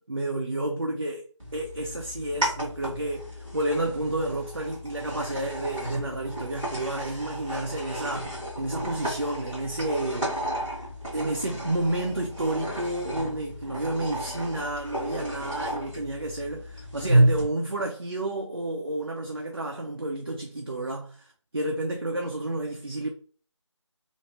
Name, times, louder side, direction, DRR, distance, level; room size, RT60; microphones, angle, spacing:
voice 1, 0.1-1.3 1.5-10.4 11.1-21.3 21.5-23.1, right 1 dB, 50° right, 0.5 m, -30 dB
sound 1, 1.4-17.4, right 1 dB, 5° right, 0.9 m, -31 dB
3.0 x 2.5 x 2.7 m
figure-of-eight pair, 175°, 16 cm